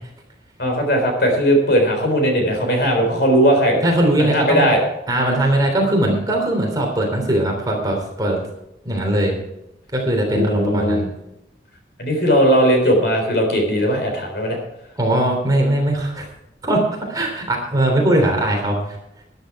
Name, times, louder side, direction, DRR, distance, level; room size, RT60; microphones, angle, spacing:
voice 1, 0.6-3.8 4.2-4.8 10.3-11.0 12.0-14.6, equal, 60° left, 3 dB, 3.9 m, -18 dB
voice 2, 3.8-4.7 5.1-8.4 8.9-9.3 9.9-11.1 15.0-16.2 16.6-19.0, right 1 dB, 20° right, 0 dB, 3.3 m, -20 dB
13.0 x 11.5 x 4.7 m, 0.84 s
head